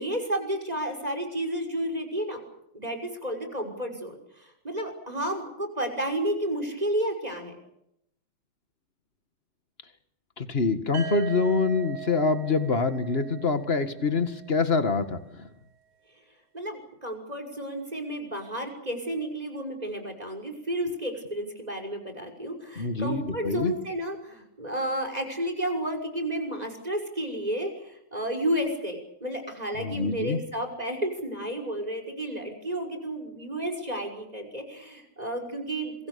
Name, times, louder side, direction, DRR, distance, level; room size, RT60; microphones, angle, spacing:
voice 1, 0.0-2.4 2.7-7.6 16.5-36.1, right 1 dB, 20° right, 5 dB, 6.1 m, -32 dB
voice 2, 10.4-15.2 22.8-23.7 29.8-30.4, left 4 dB, 35° left, 10 dB, 2.1 m, -25 dB
sound 1, 10.9-14.8, right 8 dB, 75° right, 5.3 m, -40 dB
27.5 x 23.5 x 7.0 m, 0.78 s
omnidirectional pair, 1.9 m